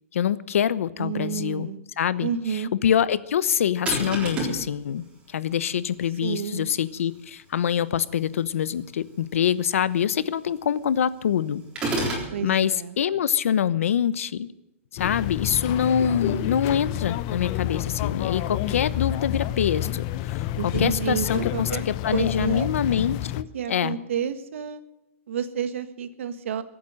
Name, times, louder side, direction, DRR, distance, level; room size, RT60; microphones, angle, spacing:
voice 1, 0.1-1.7 2.0-11.6 12.4-14.5 14.9-24.0, left 9 dB, 70° left, 17 dB, 0.9 m, -25 dB
voice 2, 1.0-1.8 2.2-2.7 6.2-6.7 12.3-13.0 16.1-16.5 20.6-21.8 22.1-22.7 23.5-24.8 25.3-26.6, right 8 dB, 60° right, 11 dB, 1.6 m, -30 dB
sound 1, 3.9-4.7 11.8-12.3, right 1 dB, 15° right, 3.8 m, -27 dB
sound 2, 15.0-23.4, left 14 dB, 25° left, 0.5 m, -29 dB
23.0 x 8.8 x 6.5 m, 0.93 s
hypercardioid pair, 170°, 8 cm